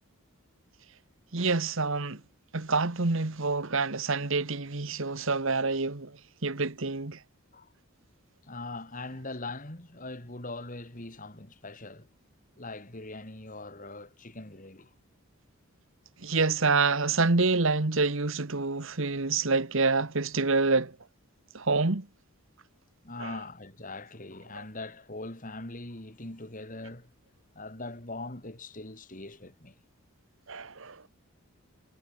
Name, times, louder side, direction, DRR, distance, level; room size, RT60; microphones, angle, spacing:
voice 1, 1.3-2.2 2.5-6.1 6.4-7.2 16.2-20.9 21.5-22.1 30.5-30.9, right 3 dB, 60° right, 1.4 m, -27 dB
voice 2, 8.4-12.1 12.6-14.9 23.0-27.1 27.5-29.7, left 2 dB, 35° left, 2.7 m, -41 dB
head